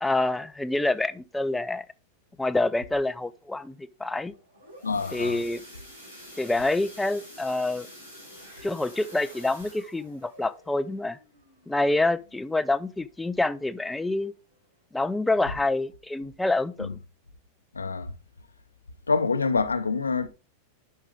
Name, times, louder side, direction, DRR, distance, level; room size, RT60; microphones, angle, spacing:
voice 1, 0.0-1.8 2.4-4.3 5.1-5.6 6.4-7.9 8.6-11.2 11.7-14.3 14.9-16.9, left 2 dB, 5° left, 0.4 m, -27 dB
sound 1, 4.3-13.0 13.4-13.7 14.0-14.1 14.5-14.6, equal, 85° right, 4.6 m, -48 dB
voice 2, 4.8-5.4 16.8-16.9 17.7-18.1 19.1-20.3, left 4 dB, 75° left, 0.7 m, -26 dB
10.5 x 5.5 x 3.4 m
figure-of-eight pair, 90°, 0 cm